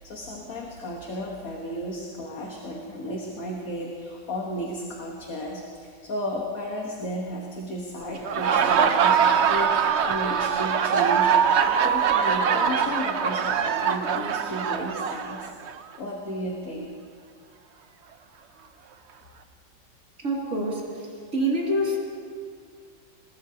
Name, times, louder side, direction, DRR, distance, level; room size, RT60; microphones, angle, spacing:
voice 1, 0.0-15.5 16.0-16.9, equal, 50° left, -1 dB, 1.7 m, -34 dB
Laughter, 8.1-15.8, right 7 dB, 70° right, 0.6 m, -22 dB
voice 2, 20.2-20.8 21.3-22.0, right 1 dB, 40° right, -4 dB, 2.9 m, -25 dB
21.5 x 20.0 x 2.9 m, 2.2 s
omnidirectional pair, 2.0 m